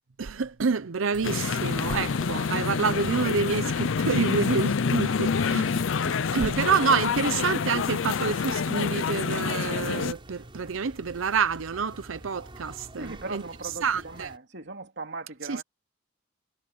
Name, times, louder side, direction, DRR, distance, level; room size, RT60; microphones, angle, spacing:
voice 1, 0.2-5.8 6.1-13.4 13.8-14.3 15.5-15.6, right 5 dB, 80° right, 0.7 m, -28 dB
sound 1, 1.1-14.4, right 1 dB, 25° right, 5.6 m, -47 dB
sound 2, 1.2-10.1, left 5 dB, 70° left, 0.5 m, -27 dB
voice 2, 4.9-5.3 13.0-15.6, right 2 dB, 60° right, 2.8 m, -39 dB
head